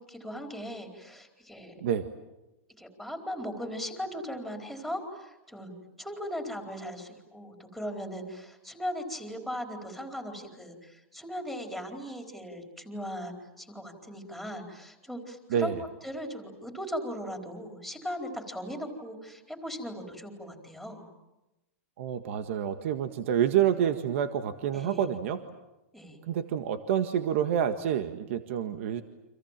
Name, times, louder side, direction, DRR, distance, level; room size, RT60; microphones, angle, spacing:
voice 1, 0.0-1.7 2.8-15.7 16.0-21.0 24.7-25.1 25.9-26.2, equal, ahead, 3 dB, 4.4 m, -38 dB
voice 2, 15.5-15.8 22.0-25.4 26.3-29.0, right 9 dB, 60° right, 8 dB, 1.7 m, -28 dB
30.0 x 26.5 x 7.5 m, 0.99 s
supercardioid pair, 150°, 8 cm